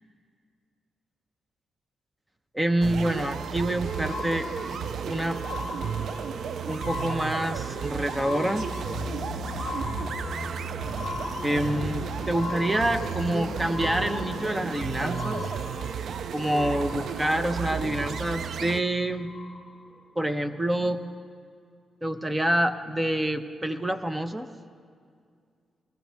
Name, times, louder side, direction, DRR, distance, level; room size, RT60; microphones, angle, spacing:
voice 1, 2.5-4.5 5.1-5.4 6.7-8.7 11.4-15.4 16.3-19.3 20.2-21.0 22.0-24.5, right 1 dB, 15° right, 9 dB, 0.8 m, -27 dB
sound 1, 2.8-18.8, right 8 dB, 70° right, 0.3 m, -33 dB
sound 2, 3.2-20.0 20.7-20.8, left 3 dB, 15° left, 1.5 m, -39 dB
sound 3, 8.7-15.5, left 6 dB, 60° left, 0.5 m, -39 dB
21.0 x 15.0 x 3.5 m, 2.2 s
cardioid pair, 90°, 0 cm